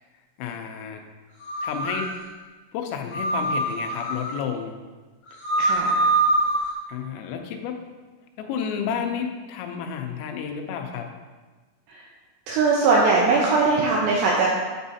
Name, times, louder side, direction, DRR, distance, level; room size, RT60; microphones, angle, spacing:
voice 1, 0.4-1.0 1.6-2.1 2.7-4.7 6.9-7.8 8.4-11.1, left 7 dB, 85° left, 4 dB, 3.4 m, -31 dB
sound 1, 1.4-2.1 3.1-4.3 5.2-6.7, right 2 dB, 45° left, 1.4 m, -24 dB
voice 2, 5.6-6.0 11.9-12.1 12.5-14.5, right 3 dB, 85° right, -3 dB, 2.6 m, -20 dB
8.6 x 7.2 x 2.7 m, 1.3 s
omnidirectional pair, 6.0 m